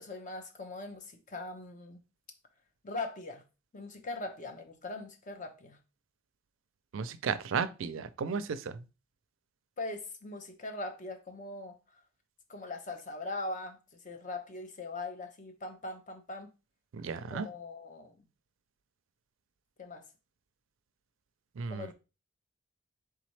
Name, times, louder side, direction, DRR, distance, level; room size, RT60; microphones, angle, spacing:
voice 1, 0.0-2.0 2.8-3.4 3.7-5.8 9.8-11.8 12.5-13.8 14.0-16.5 17.3-18.2 19.8-20.1 21.7-21.9, left 2 dB, 40° left, 0.7 m, -41 dB
voice 2, 6.9-8.6 16.9-17.5 21.6-21.9, right 6 dB, 90° right, 0.4 m, -34 dB
4.1 x 3.5 x 3.1 m
head